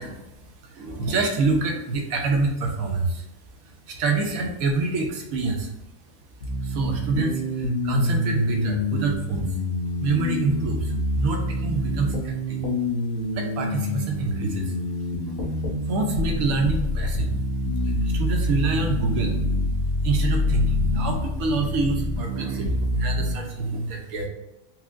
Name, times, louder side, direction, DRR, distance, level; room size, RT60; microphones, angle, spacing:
voice 1, 0.0-3.2 3.6-5.7 6.6-9.5 10.0-12.6 13.3-14.7 15.3-15.5 15.8-17.4 17.7-19.4 20.0-24.3, right 3 dB, 85° right, 2 dB, 1.1 m, -27 dB
sound 1, 6.4-23.3, left 1 dB, 50° left, 0.8 m, -26 dB
4.3 x 2.0 x 2.4 m, 0.91 s
omnidirectional pair, 1.5 m